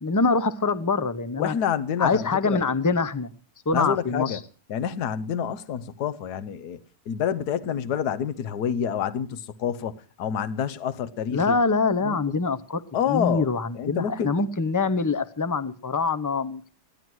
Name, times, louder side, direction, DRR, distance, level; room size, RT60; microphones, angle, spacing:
voice 1, 0.0-1.5 2.0-3.3 3.7-4.4 11.3-12.8 13.1-16.7, left 4 dB, 30° left, 0.3 m, -24 dB
voice 2, 1.4-2.6 3.7-4.4 4.7-6.8 7.1-11.6 12.0-12.3 12.9-13.5 13.7-14.3, left 8 dB, 70° left, 1.4 m, -28 dB
15.5 x 11.0 x 6.1 m
omnidirectional pair, 1.8 m